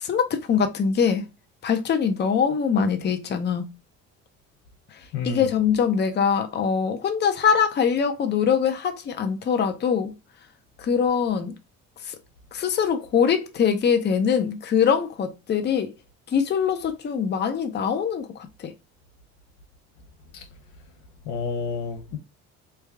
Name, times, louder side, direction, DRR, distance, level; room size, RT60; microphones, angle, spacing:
voice 1, 0.0-1.2 1.6-3.7 5.2-10.1 10.8-11.5 12.5-15.9 16.3-18.3 18.6-18.7, left 7 dB, 35° left, 0.6 m, -23 dB
voice 2, 5.1-5.5 20.3-20.4 21.2-22.2, left 5 dB, 90° left, 0.8 m, -30 dB
3.3 x 2.3 x 3.3 m
cardioid pair, 100°, 30 cm